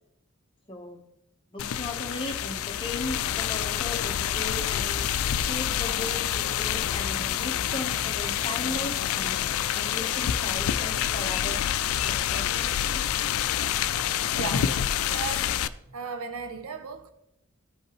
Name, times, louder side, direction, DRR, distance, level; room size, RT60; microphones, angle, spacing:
voice 1, 0.7-1.0 1.5-9.4 9.7-13.0, left 2 dB, 25° left, 0.9 m, -37 dB
sound 1, 1.6-15.7, left 10 dB, 70° left, 0.3 m, -27 dB
voice 2, 14.3-14.8 15.0-15.5 15.9-17.1, right 5 dB, 75° right, 0.7 m, -35 dB
14.5 x 5.3 x 3.0 m
head